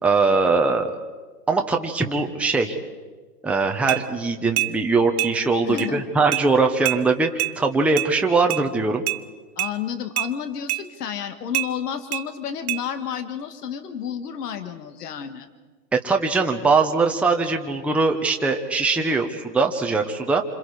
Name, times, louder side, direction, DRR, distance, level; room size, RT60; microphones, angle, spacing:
voice 1, 0.0-0.9 1.5-2.8 3.4-9.0 15.9-20.4, right 4 dB, 5° right, 2 dB, 1.0 m, -21 dB
sound 1, 3.9-4.0 4.6-4.7 5.2-5.3 5.8-5.9 6.3-6.5 6.9-7.0 7.4-7.5 8.0-8.1 8.5-8.6 9.1-9.2 9.6-9.7 10.2-10.3 10.7-10.8 11.5-11.7 12.1-12.2 12.7-12.8, right 16 dB, 60° right, 1.0 m, -25 dB
voice 2, 5.6-6.0 9.6-15.5, left 8 dB, 70° left, 9 dB, 2.1 m, -31 dB
27.0 x 26.5 x 4.9 m, 1.3 s
hypercardioid pair, 130°, 49 cm